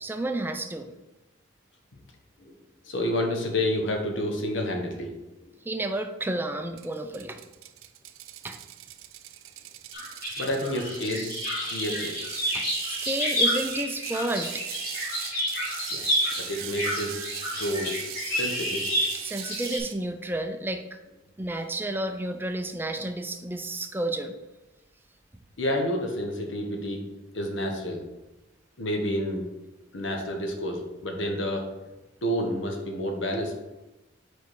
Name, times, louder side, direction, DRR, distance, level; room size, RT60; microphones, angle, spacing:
voice 1, 0.0-0.9 5.6-7.4 8.4-8.6 12.5-14.6 19.2-21.0 21.4-24.3, right 1 dB, 10° right, 6 dB, 0.4 m, -31 dB
voice 2, 2.8-5.1 10.4-11.3 11.7-12.1 15.9-16.0 16.4-17.2 17.6-17.9 18.3-18.9 25.6-27.0 27.3-28.0 28.8-29.5 29.9-31.7 32.2-33.5, left 1 dB, 65° left, 2 dB, 1.1 m, -29 dB
Ratchet pawl, 6.8-20.0, right 13 dB, 80° right, 0.4 m, -40 dB
sound 1, 9.9-19.8, equal, 45° left, 2.1 m, -30 dB
4.7 x 4.6 x 4.7 m, 1.0 s
head